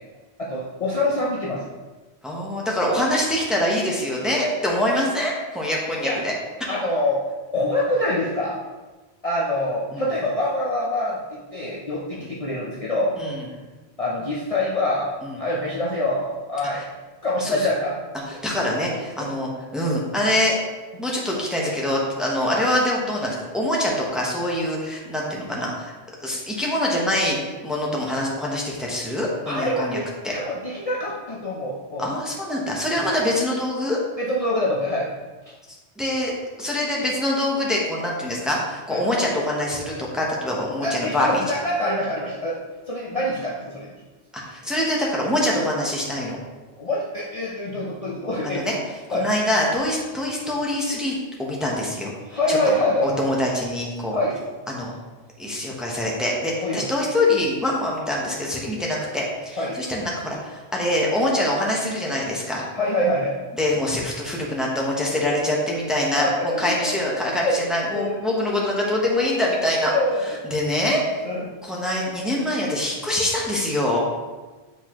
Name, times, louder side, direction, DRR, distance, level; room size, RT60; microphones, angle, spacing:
voice 1, 0.4-1.6 6.0-6.2 6.7-7.2 7.5-8.6 9.2-13.2 14.0-15.1 15.4-16.8 17.2-18.0 18.3-18.7 19.2-19.3 29.5-32.1 32.9-33.1 34.2-35.1 35.5-35.6 38.9-39.0 40.8-42.6 42.9-43.9 44.6-44.7 46.8-48.6 49.1-49.3 52.3-53.2 54.1-54.4 56.6-56.9 59.6-59.8 62.8-63.4 66.1-67.6 67.9-68.2 69.9-70.4 71.2-71.5, left 1 dB, 40° left, -5 dB, 0.7 m, -25 dB
voice 2, 2.2-6.3 9.9-10.0 12.2-12.3 13.2-13.4 15.2-15.3 17.4-17.6 18.3-20.6 21.0-25.9 26.2-27.4 27.6-30.0 30.2-30.3 32.0-34.0 36.0-36.3 36.6-41.4 44.4-46.4 48.4-48.8 49.1-52.1 52.5-52.6 53.0-54.2 54.7-54.9 55.4-62.7 63.6-69.9 70.5-71.2 71.6-74.0, left 1 dB, ahead, -3 dB, 1.0 m, -24 dB
8.1 x 4.2 x 3.1 m, 1.3 s
omnidirectional pair, 1.1 m